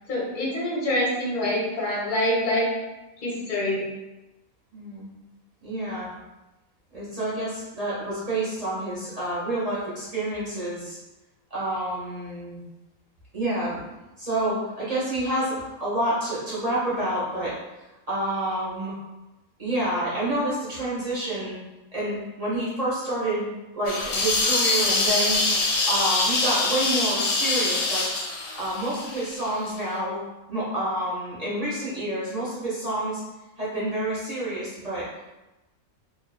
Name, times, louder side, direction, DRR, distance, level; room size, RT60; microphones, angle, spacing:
voice 1, 0.1-2.8 3.2-3.9, left 1 dB, 50° left, -6 dB, 0.7 m, -25 dB
voice 2, 4.7-5.1 5.6-6.1 6.9-11.0 11.5-12.6 13.3-13.8 14.2-17.6 18.1-18.9 19.6-21.6 21.9-23.5 23.7-25.4 25.9-28.1 28.5-30.2 30.5-33.2 33.6-35.1, right 1 dB, 40° right, -9 dB, 0.6 m, -28 dB
sound 1, 23.9-29.7, left 2 dB, 85° left, 1.0 m, -24 dB
2.5 x 2.2 x 2.3 m, 1.0 s
omnidirectional pair, 1.5 m